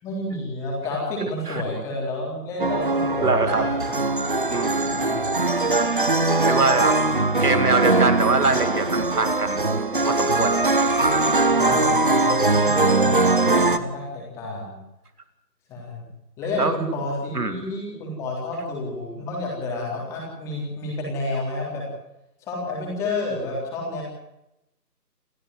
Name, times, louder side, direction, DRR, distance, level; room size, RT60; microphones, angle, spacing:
voice 1, 0.0-4.0 4.9-5.3 11.6-14.8 15.7-16.1 16.4-21.8 22.4-24.0, left 2 dB, 5° left, -3 dB, 3.6 m, -30 dB
voice 2, 1.2-1.6 3.2-3.7 4.5-5.2 6.4-7.0 7.4-9.7 10.0-10.7 11.6-11.8 16.6-16.8 17.3-17.7, right 3 dB, 65° right, 10 dB, 2.5 m, -24 dB
sound 1, 2.6-13.8, right 2 dB, 30° right, 1.0 m, -21 dB
29.0 x 13.5 x 7.7 m, 0.87 s
figure-of-eight pair, 160°, 50 cm